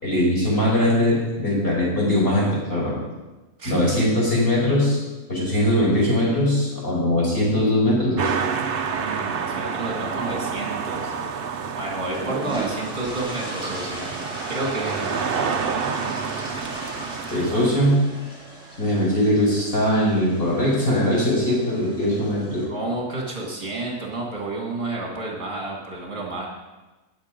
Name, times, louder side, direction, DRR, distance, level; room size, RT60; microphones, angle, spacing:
voice 1, 0.0-2.9 3.6-5.0 5.3-8.3 17.3-18.0 18.8-22.6, left 1 dB, 35° left, -6 dB, 5.7 m, -21 dB
voice 2, 3.6-3.9 8.9-11.1 11.7-14.1 14.5-15.1 22.7-26.5, right 2 dB, 30° right, -1 dB, 2.3 m, -30 dB
sound 1, 8.2-17.7, right 6 dB, 50° right, 0.7 m, -29 dB
sound 2, 12.1-22.7, right 1 dB, 5° right, 3.5 m, -37 dB
19.0 x 6.9 x 5.2 m, 1.1 s
omnidirectional pair, 1.6 m